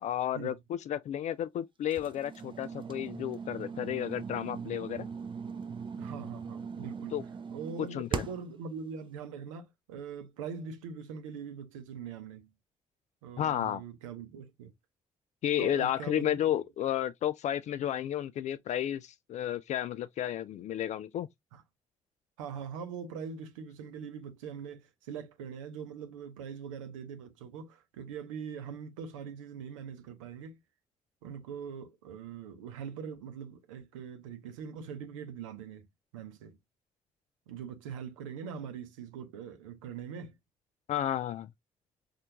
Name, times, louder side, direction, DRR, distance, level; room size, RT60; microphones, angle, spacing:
voice 1, 0.0-5.1 7.1-7.2 7.8-8.3 13.4-13.8 15.4-21.3 40.9-41.5, left 11 dB, 45° left, 0.4 m, -32 dB
sound 1, 1.9-8.6, right 6 dB, 30° right, 0.5 m, -40 dB
voice 2, 6.0-7.1 7.5-12.5 13.2-14.7 15.6-16.4 21.5-21.6 22.4-30.6 31.2-35.9 36.1-36.6 37.5-40.4, right 7 dB, 75° right, 0.7 m, -42 dB
4.3 x 2.4 x 2.8 m
figure-of-eight pair, 40°, 17 cm